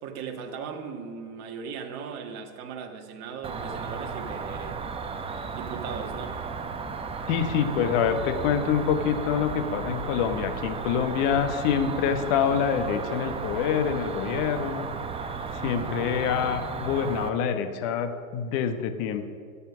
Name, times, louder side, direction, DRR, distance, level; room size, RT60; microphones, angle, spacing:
voice 1, 0.0-4.8 5.6-6.3, right 6 dB, 40° right, 3 dB, 1.7 m, -38 dB
Cricket, 3.4-17.3, right 5 dB, 15° right, 0.9 m, -34 dB
voice 2, 7.3-14.9 15.6-19.3, left 7 dB, 45° left, 8 dB, 1.3 m, -26 dB
13.5 x 8.7 x 6.2 m, 2.1 s
hypercardioid pair, 110°, 42 cm